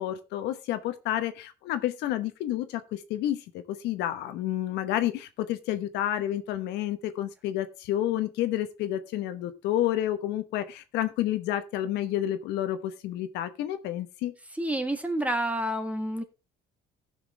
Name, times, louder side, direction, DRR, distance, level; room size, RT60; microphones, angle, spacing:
voice 1, 0.0-14.3, left 12 dB, 90° left, 10 dB, 1.1 m, -30 dB
voice 2, 14.5-16.2, right 1 dB, 10° right, 7 dB, 1.7 m, -29 dB
16.0 x 6.0 x 3.3 m, 0.28 s
cardioid pair, 110°, 17 cm